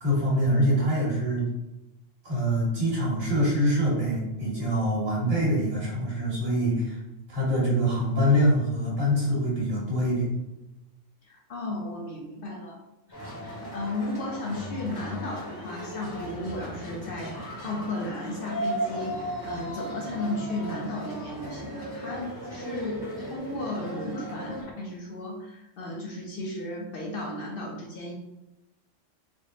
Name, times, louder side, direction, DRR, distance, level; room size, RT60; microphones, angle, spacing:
voice 1, 0.0-1.5 2.2-7.0 7.3-10.3, equal, 40° right, -7 dB, 1.8 m, -24 dB
voice 2, 11.2-12.8 13.4-28.1, left 1 dB, 55° left, -1 dB, 0.7 m, -35 dB
sound 1, 13.1-24.6, equal, 20° left, 1.0 m, -36 dB
3.7 x 2.1 x 3.6 m, 0.97 s
omnidirectional pair, 1.3 m